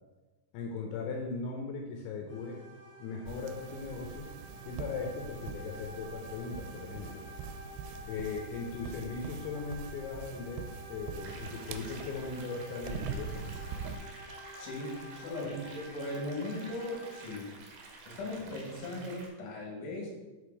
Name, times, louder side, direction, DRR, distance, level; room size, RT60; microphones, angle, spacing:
voice 1, 0.5-2.6 3.0-4.3 4.7-7.2 8.1-13.5 15.3-15.6, left 4 dB, 85° left, 1 dB, 3.1 m, -39 dB
sound 1, 2.3-17.3, equal, 30° right, 1.1 m, -50 dB
sound 2, 3.3-14.0, right 6 dB, 90° right, 2.9 m, -43 dB
sound 3, 11.2-19.3, right 3 dB, 70° right, 2.8 m, -51 dB
voice 2, 14.6-17.6 18.1-20.1, left 1 dB, 60° left, -1 dB, 3.2 m, -38 dB
6.7 x 5.1 x 4.7 m, 1.2 s
omnidirectional pair, 5.2 m